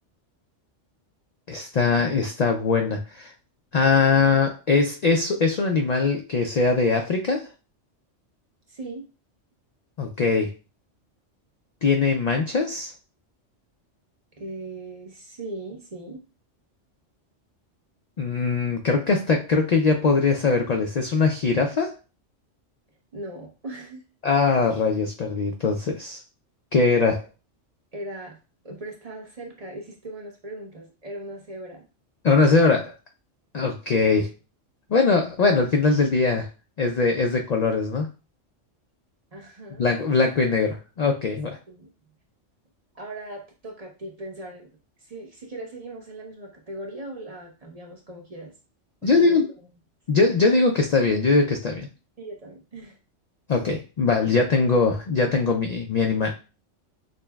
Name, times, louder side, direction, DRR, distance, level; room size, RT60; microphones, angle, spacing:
voice 1, 1.5-3.3 3.7-7.5 10.0-10.5 11.8-12.9 18.2-22.0 24.2-26.2 26.7-27.3 32.2-32.9 33.5-34.3 34.9-36.5 36.8-38.1 39.8-41.6 49.0-49.5 50.1-51.9 53.5-56.3, left 4 dB, 75° left, 3 dB, 0.3 m, -21 dB
voice 2, 8.7-9.0 14.4-16.2 23.1-24.0 27.9-28.4 28.6-31.8 39.3-39.9 41.7-41.9 42.9-44.7 45.0-48.5 49.0-49.4 52.2-53.0, right 1 dB, 35° right, 0 dB, 0.7 m, -38 dB
6.2 x 2.1 x 2.3 m, 0.33 s
omnidirectional pair, 1.3 m